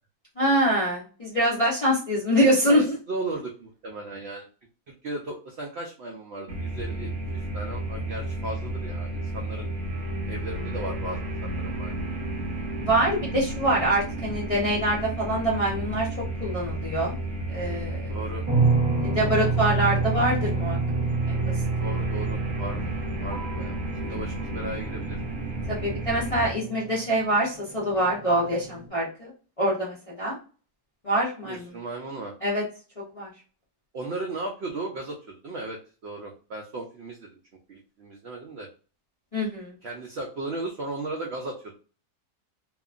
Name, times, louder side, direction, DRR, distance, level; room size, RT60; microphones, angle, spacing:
voice 1, 0.4-2.9 12.8-16.1 16.4-17.1 17.5-18.1 19.0-20.8 21.3-21.4 25.7-29.3 29.6-30.4 31.0-31.7 32.4-32.6 33.2-33.3 39.3-39.7, right 1 dB, 50° left, -7 dB, 0.4 m, -24 dB
voice 2, 2.7-4.5 4.9-7.1 7.5-9.7 10.3-12.0 18.1-18.4 21.8-22.9 23.2-25.2 31.4-32.3 33.9-37.4 37.7-38.7 39.8-41.7, right 2 dB, 85° right, 1 dB, 0.5 m, -36 dB
sound 1, 6.5-26.5, right 1 dB, 65° right, 1.0 m, -32 dB
sound 2, 11.5-16.2 18.5-28.9, right 4 dB, 30° right, 1.4 m, -30 dB
2.8 x 2.4 x 2.3 m, 0.37 s
omnidirectional pair, 1.7 m